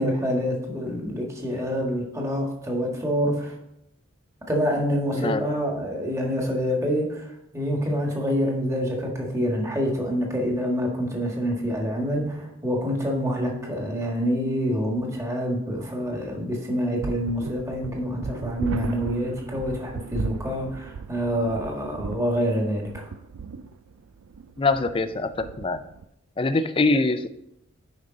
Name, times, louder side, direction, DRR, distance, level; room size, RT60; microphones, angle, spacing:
voice 1, 0.0-3.5 4.5-23.1, equal, 15° right, 0 dB, 1.4 m, -26 dB
sound 1, 17.0-26.0, right 5 dB, 85° right, 0.4 m, -37 dB
voice 2, 24.6-25.8 26.4-27.3, left 3 dB, 25° left, 10 dB, 0.4 m, -23 dB
9.6 x 5.3 x 3.8 m, 0.80 s
head